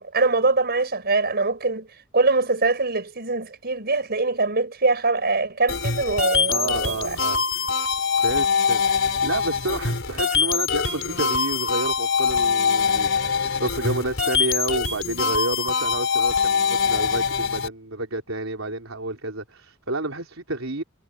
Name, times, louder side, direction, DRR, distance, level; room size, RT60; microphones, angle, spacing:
voice 1, 0.0-1.9 2.1-7.2, right 3 dB, 50° right, 5.5 m, -23 dB
sound 1, 5.7-17.7, left 5 dB, 65° left, 4.9 m, -23 dB
voice 2, 6.5-7.7 8.1-20.8, right 2 dB, 75° right, 4.3 m, -30 dB
head